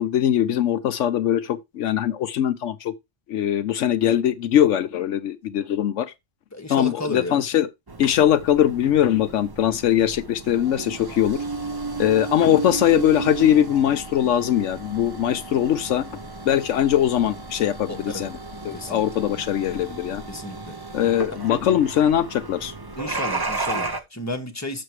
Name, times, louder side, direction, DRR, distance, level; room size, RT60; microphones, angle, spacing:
voice 1, 0.0-2.9 3.3-6.1 6.7-7.7 8.0-11.4 12.0-16.1 16.5-18.3 18.6-20.2 20.9-22.7, left 10 dB, 75° left, 1.0 m, -21 dB
voice 2, 6.5-7.4 17.9-18.3 18.7-19.0 20.3-20.8 21.3-21.4 23.0-24.8, left 2 dB, 15° left, 1.4 m, -33 dB
sound 1, 7.9-24.0, right 3 dB, 25° right, 0.7 m, -34 dB
6.8 x 6.7 x 4.6 m
omnidirectional pair, 1.3 m